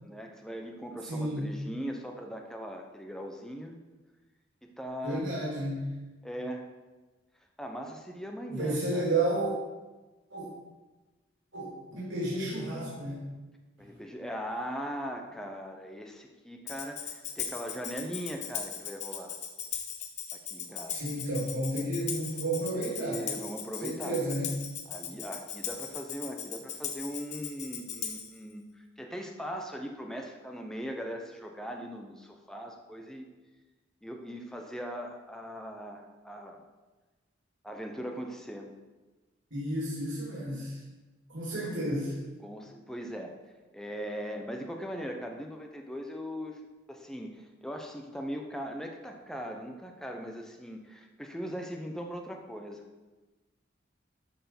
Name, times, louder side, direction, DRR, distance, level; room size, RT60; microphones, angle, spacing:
voice 1, 0.0-3.8 4.6-5.3 6.2-6.7 7.6-9.1 13.8-19.4 20.3-21.0 22.6-24.3 24.9-33.3 34.0-36.6 37.6-38.7 41.6-41.7 42.4-43.3 43.7-52.8, equal, 5° left, 3 dB, 0.8 m, -40 dB
voice 2, 1.1-1.5 5.0-5.8 8.5-9.5 10.3-10.5 11.5-13.2 20.9-23.3 23.8-24.5 39.5-40.8 41.3-42.1, right 1 dB, 80° right, -6 dB, 3.0 m, -32 dB
Tambourine, 16.7-28.4, left 7 dB, 35° left, 0.9 m, -38 dB
12.5 x 4.6 x 5.9 m, 1.2 s
head